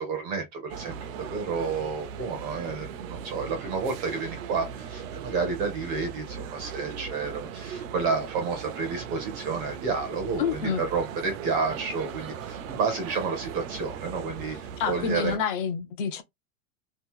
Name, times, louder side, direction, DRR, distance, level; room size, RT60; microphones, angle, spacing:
voice 1, 0.0-14.6 14.9-15.4, right 4 dB, 20° right, 0.6 m, -30 dB
sound 1, 0.7-15.4, right 7 dB, 65° right, 0.7 m, -38 dB
voice 2, 10.4-10.8 14.8-16.2, left 7 dB, 40° left, 0.5 m, -28 dB
2.9 x 2.5 x 3.6 m
supercardioid pair, 175°, 43 cm